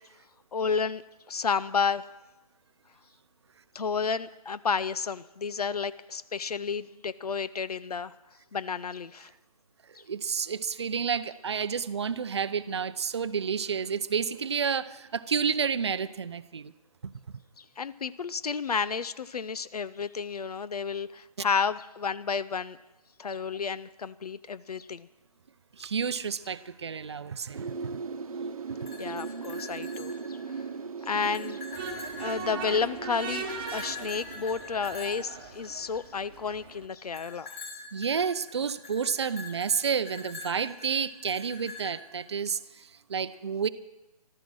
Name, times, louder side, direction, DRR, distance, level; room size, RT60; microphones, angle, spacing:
voice 1, 0.5-1.0 1.3-2.1 3.7-8.1 8.5-9.3 17.6-22.8 23.2-25.1 28.9-30.4 31.0-31.6 32.2-37.5, left 5 dB, 85° left, 16 dB, 0.6 m, -31 dB
voice 2, 9.9-16.7 17.0-17.4 21.4-21.5 25.8-27.9 28.7-28.9 37.9-43.7, right 6 dB, 45° right, 13 dB, 0.6 m, -30 dB
sound 1, 27.5-35.5 35.8-35.9, right 5 dB, 70° right, 1.0 m, -39 dB
sound 2, 28.7-30.7 31.0-33.0 33.5-36.2 37.1-42.2, left 3 dB, 20° left, 2.5 m, -44 dB
sound 3, 31.7-36.9, right 5 dB, 15° right, 1.1 m, -40 dB
14.5 x 13.0 x 6.2 m, 0.98 s
hypercardioid pair, 175°, 19 cm